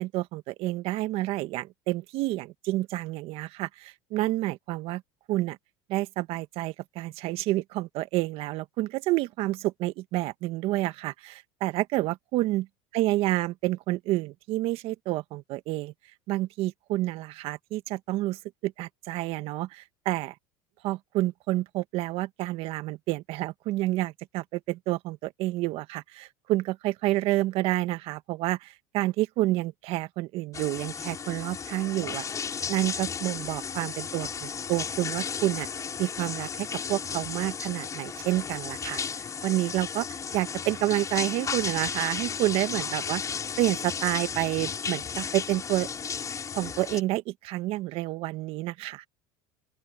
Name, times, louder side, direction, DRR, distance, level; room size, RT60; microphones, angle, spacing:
voice 1, 0.0-5.0 5.3-5.6 5.9-12.7 12.9-15.9 16.3-20.3 20.8-32.2 32.7-35.7 36.0-40.1 40.3-43.2 43.6-45.9 46.5-49.0, right 17 dB, 60° right, 1.7 m, -29 dB
sound 1, 30.5-47.0, left 6 dB, 30° left, 6.8 m, -34 dB
open air
supercardioid pair, 100°, 11 cm